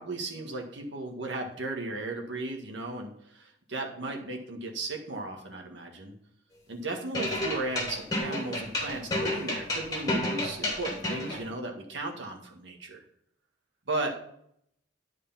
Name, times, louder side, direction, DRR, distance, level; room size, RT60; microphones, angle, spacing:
voice 1, 0.0-6.1 6.7-13.0 13.9-14.2, right 2 dB, 70° right, 1 dB, 1.8 m, -35 dB
sound 1, 7.1-11.4, left 1 dB, 20° left, 2.8 m, -30 dB
11.0 x 5.0 x 5.7 m, 0.71 s
head